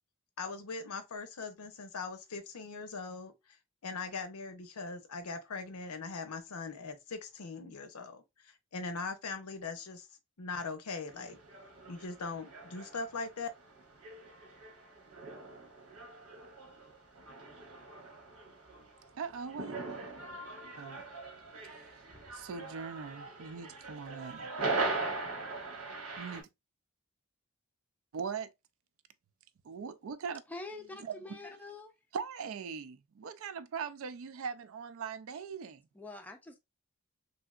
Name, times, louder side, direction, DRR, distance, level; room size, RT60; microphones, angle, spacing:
voice 1, 0.4-3.3 3.8-10.1 10.4-11.4 11.9-13.5, left 4 dB, 85° left, 0.7 m, -40 dB
sound 1, 11.1-26.4, right 3 dB, 90° right, 1.2 m, -41 dB
voice 2, 19.1-19.8 20.8-21.0 21.6-21.9 22.3-24.5 26.2-26.5 28.1-28.5 29.6-30.4 31.0-31.4 32.1-35.8, right 6 dB, 70° right, 0.4 m, -41 dB
voice 3, 30.5-31.9 35.9-36.6, left 2 dB, 5° left, 0.4 m, -45 dB
3.3 x 2.7 x 2.3 m
head